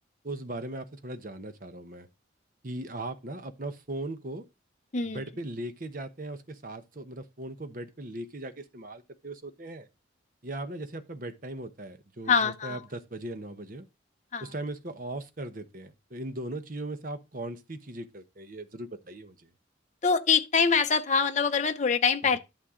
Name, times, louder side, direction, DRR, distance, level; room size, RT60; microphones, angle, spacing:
voice 1, 0.2-2.1 2.6-4.4 5.0-9.9 10.4-13.9 14.4-19.5 22.2-22.4, right 1 dB, 45° right, 1.0 m, -38 dB
voice 2, 4.9-5.2 12.3-12.8 14.3-14.5 20.0-22.4, left 5 dB, 40° left, 0.7 m, -24 dB
11.5 x 5.7 x 3.7 m
head